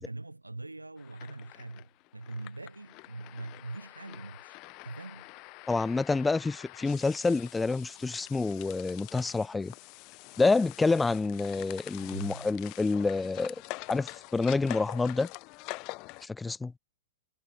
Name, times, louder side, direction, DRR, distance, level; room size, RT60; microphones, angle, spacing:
voice 1, 0.0-5.3 12.0-12.5, right 2 dB, 90° right, 2.5 m, -42 dB
sound 1, 1.0-16.3, left 26 dB, 40° left, 1.3 m, -46 dB
voice 2, 5.7-9.7 10.4-13.5 13.9-15.3 16.2-16.7, left 3 dB, 10° left, 1.2 m, -28 dB
figure-of-eight pair, 105°, 0 cm